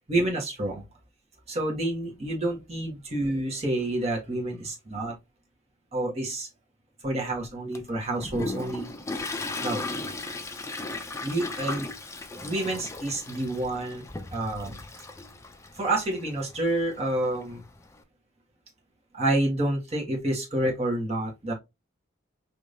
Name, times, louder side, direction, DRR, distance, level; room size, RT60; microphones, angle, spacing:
voice 1, 0.1-0.8 1.5-5.1 5.9-6.5 7.0-8.9 9.6-9.8 11.2-11.9 12.4-14.8 15.7-17.6 19.1-21.5, right 1 dB, 30° right, -1 dB, 1.3 m, -28 dB
Toilet flush, 7.7-18.0, left 2 dB, 15° left, 0.4 m, -37 dB
4.9 x 2.7 x 2.7 m, 0.22 s
head